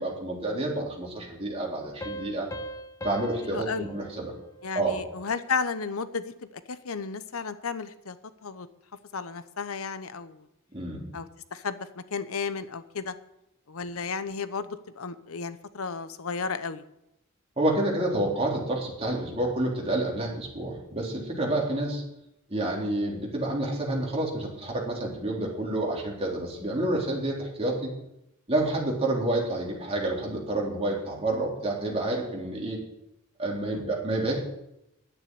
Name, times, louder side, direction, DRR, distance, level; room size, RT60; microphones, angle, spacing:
voice 1, 0.0-2.5 3.0-4.3 4.7-5.0 10.7-11.1 17.6-22.0 22.5-27.9 28.5-32.8 33.4-34.4, right 1 dB, 25° right, -2 dB, 3.7 m, -29 dB
sound 1, 2.0-5.3, equal, 15° left, 0.8 m, -41 dB
voice 2, 3.4-3.9 4.6-8.2 8.4-8.7 9.1-10.4 11.1-13.1 13.7-16.8 33.7-33.8, left 5 dB, 75° left, 13 dB, 0.8 m, -33 dB
11.0 x 9.4 x 10.0 m, 0.85 s
head